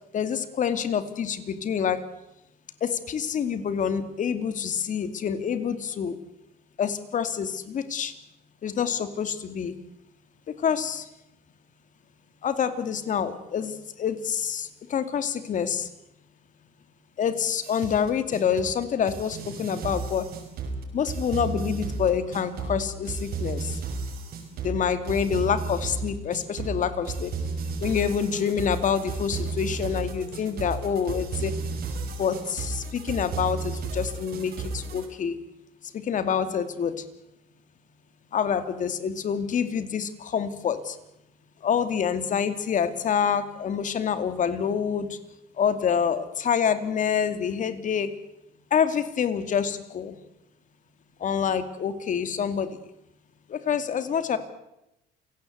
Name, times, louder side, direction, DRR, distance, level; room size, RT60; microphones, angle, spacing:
voice 1, 0.1-2.0 2.8-6.2 6.8-8.1 8.6-9.8 10.6-11.1 12.4-15.9 17.2-20.3 20.9-23.8 24.6-27.3 27.8-31.5 32.1-35.4 35.9-37.0 38.3-41.0 41.6-45.2 45.6-48.1 48.7-50.2 51.2-52.8 53.5-54.4, left 7 dB, 50° left, 11 dB, 2.6 m, -27 dB
sound 1, 17.6-35.0, right 4 dB, 65° right, 6.1 m, -33 dB
28.5 x 17.5 x 8.1 m, 0.88 s
cardioid pair, 110°, 17 cm